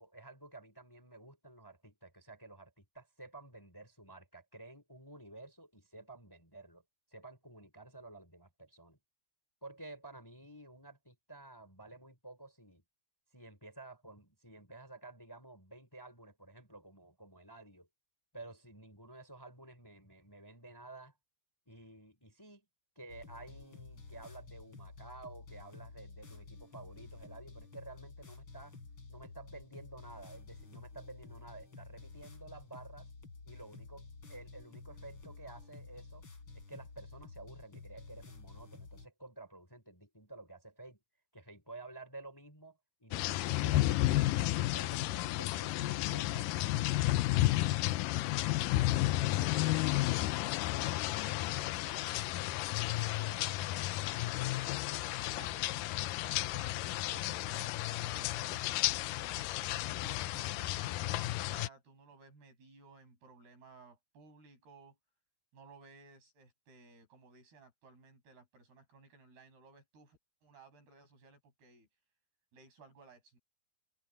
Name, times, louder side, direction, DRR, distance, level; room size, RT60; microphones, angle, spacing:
voice 1, 0.0-6.8 7.1-9.0 9.6-12.8 13.3-17.9 18.3-21.2 21.7-22.7 23.0-28.7 29.1-33.1 33.5-36.2 36.5-41.0 41.3-47.1, right 2 dB, 5° left, 3.7 m, -52 dB
sound 1, 23.1-39.1, left 3 dB, 30° left, 4.6 m, -51 dB
sound 2, 43.1-61.7, left 16 dB, 80° left, 2.0 m, -32 dB
voice 2, 48.4-49.2 49.8-50.4 50.7-53.9 54.3-56.8 57.1-59.4 59.9-65.0 65.5-71.9 72.5-73.4, right 4 dB, 85° right, 9.2 m, -58 dB
open air
omnidirectional pair, 4.4 m